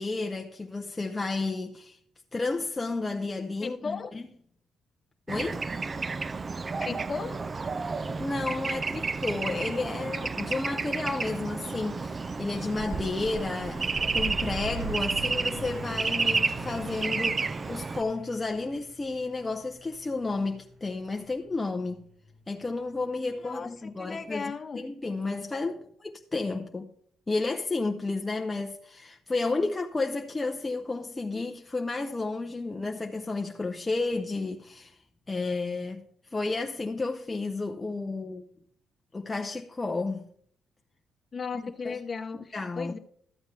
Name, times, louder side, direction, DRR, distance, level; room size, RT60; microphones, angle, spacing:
voice 1, 0.0-2.0 2.3-4.3 5.3-5.7 8.0-22.1 22.5-26.9 27.3-35.0 35.3-36.1 36.3-38.4 39.1-40.3 41.5-42.0 42.3-42.9, left 3 dB, 20° left, 0.6 m, -32 dB
voice 2, 3.6-4.1 6.8-7.4 23.3-24.8 41.3-43.0, left 5 dB, 40° left, 0.9 m, -36 dB
Bird / Traffic noise roadway noise, 5.3-18.0, right 4 dB, 30° right, 0.3 m, -31 dB
Truck, 11.8-23.6, right 1 dB, 50° right, 2.1 m, -44 dB
12.5 x 7.9 x 3.3 m
cardioid pair, 90°, 0 cm